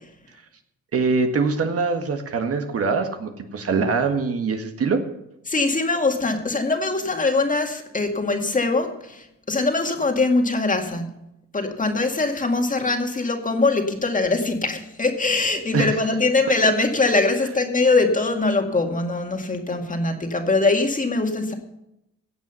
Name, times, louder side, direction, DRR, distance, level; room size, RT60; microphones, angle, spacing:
voice 1, 0.9-5.0 15.7-16.0, right 4 dB, 50° right, 6 dB, 1.7 m, -23 dB
voice 2, 5.5-11.1 11.5-21.5, left 3 dB, 25° left, 4 dB, 2.0 m, -22 dB
16.0 x 8.0 x 5.6 m, 0.83 s
cardioid pair, 90°, 30 cm